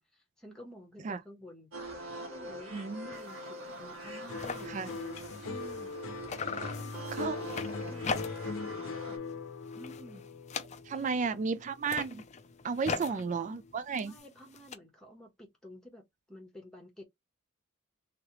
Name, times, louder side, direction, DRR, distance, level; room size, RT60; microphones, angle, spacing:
voice 1, 0.0-1.7 2.2-4.9 5.4-5.9 6.5-7.5 7.8-9.2 9.7-10.3 10.9-11.3 12.9-13.3 14.0-17.0, equal, 5° left, 1.1 m, -51 dB
sound 1, 1.7-9.2, right 2 dB, 75° right, 1.6 m, -44 dB
voice 2, 2.7-3.1 4.7-4.9 7.2-7.4 10.9-12.2 12.6-14.1, right 5 dB, 35° right, 0.3 m, -33 dB
sound 2, 3.1-3.4 3.7-3.8 4.0-6.0 6.3-8.6 9.0-9.3 9.7-11.2 11.7-14.8, left 5 dB, 30° left, 0.4 m, -40 dB
sound 3, 4.3-12.7 13.1-13.7, left 4 dB, 75° left, 0.7 m, -41 dB
3.6 x 3.2 x 3.0 m
head